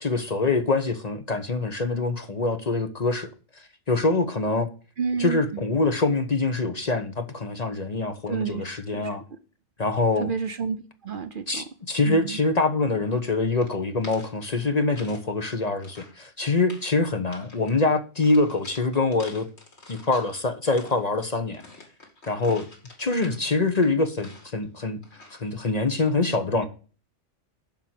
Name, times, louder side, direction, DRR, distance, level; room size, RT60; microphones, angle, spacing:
voice 1, 0.0-3.3 3.9-4.7 5.2-9.2 9.8-10.3 11.5-19.5 19.9-21.6 22.3-22.7 23.0-25.0 25.3-26.7, left 3 dB, 40° left, 0.9 m, -24 dB
voice 2, 5.0-5.6 8.3-8.6 8.9-9.1 10.2-10.8 11.0-11.6 12.0-12.4, right 6 dB, 50° right, 0.8 m, -30 dB
sound 1, 13.6-15.2 15.5-16.2 16.5-16.9 17.3-17.8 18.2-20.3 20.7-24.6 25.0-25.5, left 2 dB, 65° left, 2.7 m, -48 dB
7.1 x 5.6 x 7.5 m
omnidirectional pair, 1.2 m